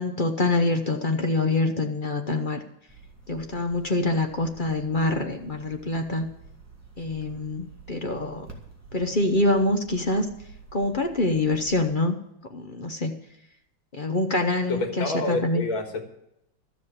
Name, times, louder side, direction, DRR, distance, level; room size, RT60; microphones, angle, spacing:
voice 1, 0.0-2.6 3.3-6.3 7.0-8.5 8.9-10.3 10.7-12.2 12.5-13.1 13.9-15.6, left 2 dB, 45° left, 4 dB, 0.6 m, -25 dB
sound 1, 2.9-11.8, right 4 dB, 10° right, 2.1 m, -49 dB
voice 2, 14.7-16.0, left 2 dB, 80° left, 4 dB, 2.5 m, -28 dB
13.0 x 7.4 x 8.5 m, 0.80 s
omnidirectional pair, 2.1 m